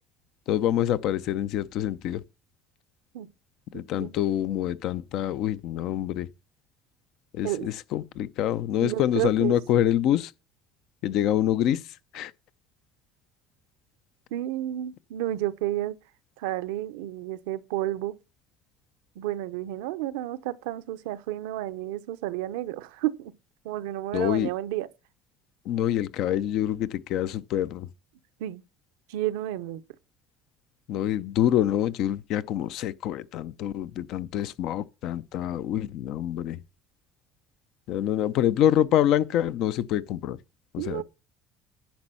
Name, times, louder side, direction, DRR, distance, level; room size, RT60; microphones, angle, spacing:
voice 1, 0.5-2.2 3.7-6.3 7.3-10.3 11.0-11.8 12.1-12.3 24.1-24.5 25.7-27.9 30.9-36.6 37.9-40.4 40.7-41.0, left 11 dB, 65° left, 0.6 m, -26 dB
voice 2, 3.7-4.1 7.4-7.7 8.8-9.6 14.3-16.0 16.4-18.1 19.2-23.3 23.6-24.9 28.4-28.6 29.1-29.8 40.8-41.0, right 14 dB, 90° right, 0.7 m, -31 dB
10.5 x 5.3 x 5.7 m
supercardioid pair, 100°, 0 cm